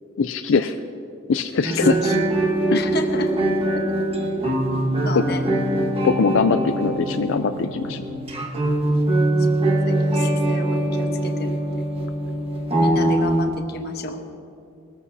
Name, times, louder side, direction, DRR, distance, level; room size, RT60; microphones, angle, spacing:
voice 1, 0.2-0.8 1.3-2.0 2.7-2.8 6.0-8.0, left 5 dB, 85° left, 7 dB, 0.5 m, -21 dB
sound 1, 1.6-13.5, right 1 dB, 30° right, 1.4 m, -22 dB
voice 2, 1.7-2.2 2.7-3.5 3.7-3.8 5.0-5.4 9.4-11.8 12.8-14.2, left 2 dB, 55° left, 5 dB, 1.1 m, -32 dB
21.0 x 14.0 x 2.8 m, 2.7 s
head